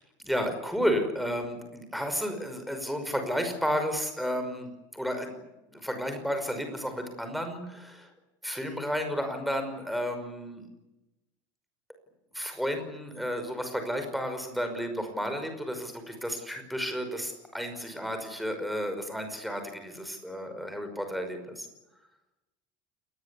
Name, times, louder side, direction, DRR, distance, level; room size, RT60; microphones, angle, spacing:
voice 1, 0.2-5.4 5.7-8.1 8.4-10.7 12.3-21.7, equal, ahead, 6 dB, 5.5 m, -32 dB
29.0 x 20.0 x 8.5 m, 0.94 s
cardioid pair, 165°, 11 cm